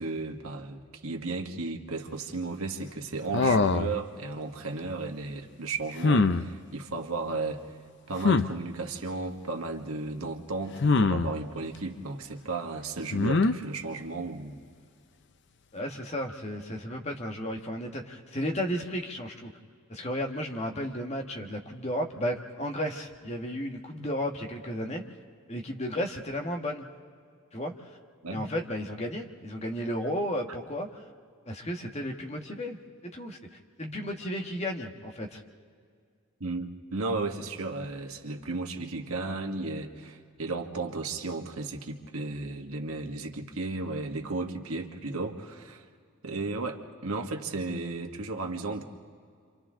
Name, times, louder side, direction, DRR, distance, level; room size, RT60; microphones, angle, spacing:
voice 1, 0.0-7.6 8.1-14.6 28.2-28.4 36.4-45.8 46.2-48.8, right 3 dB, 85° right, 4 dB, 1.6 m, -34 dB
sound 1, 3.3-4.0 6.0-6.4 8.2-8.5 10.8-11.3 13.1-13.5, left 3 dB, 55° left, 0.6 m, -22 dB
voice 2, 15.7-19.5 19.9-25.0 25.5-26.9 27.5-27.9 28.3-31.0 31.5-33.4 33.8-35.4, equal, 30° left, 2 dB, 1.5 m, -33 dB
30.0 x 26.0 x 3.8 m, 2.1 s
head